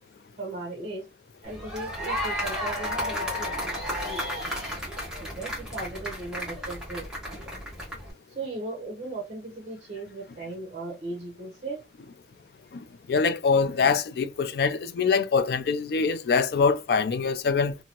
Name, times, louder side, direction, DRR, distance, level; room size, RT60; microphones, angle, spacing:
voice 1, 0.4-1.0 1.4-3.7 4.0-4.2 5.2-7.0 8.3-11.8, right 2 dB, 45° right, 0.8 m, -37 dB
sound 1, 1.4-8.1, equal, 5° right, 1.1 m, -33 dB
voice 2, 12.7-17.8, left 5 dB, 60° left, 0.3 m, -24 dB
2.8 x 2.6 x 2.8 m
head